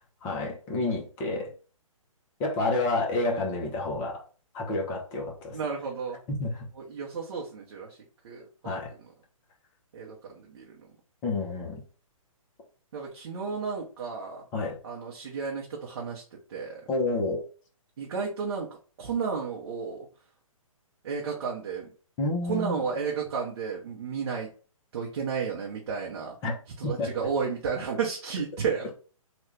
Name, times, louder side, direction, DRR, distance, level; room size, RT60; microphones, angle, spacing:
voice 1, 0.2-1.5 2.4-4.2 4.5-5.6 6.3-6.7 8.6-8.9 11.2-11.8 14.5-14.8 16.9-17.5 22.2-22.8 26.4-26.5 26.8-27.2, left 2 dB, 20° left, 0.8 m, -29 dB
voice 2, 5.5-6.2 6.9-7.9 8.2-8.8 9.9-10.6 12.9-14.4 14.8-16.2 16.5-16.8 18.0-18.7 19.0-20.0 21.0-21.9 22.5-24.5 24.9-26.3 26.8-28.9, right 5 dB, 50° right, 0.8 m, -32 dB
3.3 x 2.3 x 3.1 m
hypercardioid pair, 140°, 18 cm